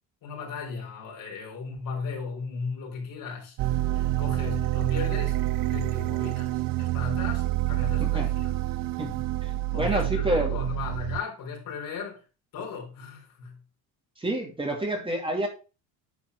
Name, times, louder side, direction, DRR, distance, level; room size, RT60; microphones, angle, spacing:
voice 1, 0.2-5.4 5.7-8.5 9.7-12.2 12.5-13.6, left 5 dB, 60° left, 3.9 m, -36 dB
sound 1, 3.6-11.2, right 16 dB, 60° right, 0.5 m, -27 dB
voice 2, 9.0-10.5 14.2-15.5, right 1 dB, 15° right, 2.3 m, -29 dB
9.7 x 4.4 x 4.6 m
cardioid pair, 120°, 38 cm